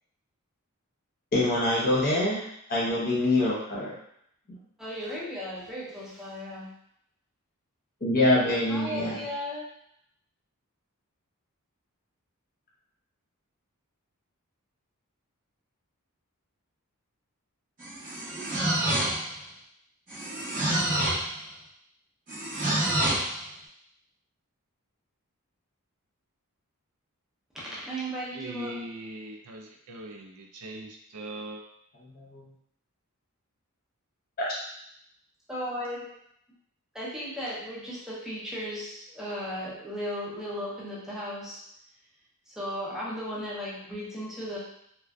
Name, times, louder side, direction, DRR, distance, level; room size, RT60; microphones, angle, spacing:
voice 1, 1.3-2.4 2.7-3.9 8.0-9.2 32.2-32.4 34.4-34.5, left 1 dB, 40° left, -6 dB, 0.7 m, -25 dB
voice 2, 4.8-6.7 8.7-9.6 27.5-28.8 35.5-36.1 36.9-41.6 42.5-44.6, equal, ahead, -7 dB, 0.5 m, -36 dB
sound 1, 17.8-19.4 20.1-21.3 22.3-23.3, right 1 dB, 40° right, 0.7 m, -27 dB
voice 3, 28.3-31.6, right 1 dB, 85° right, 2 dB, 0.4 m, -40 dB
2.5 x 2.2 x 2.2 m, 0.73 s
head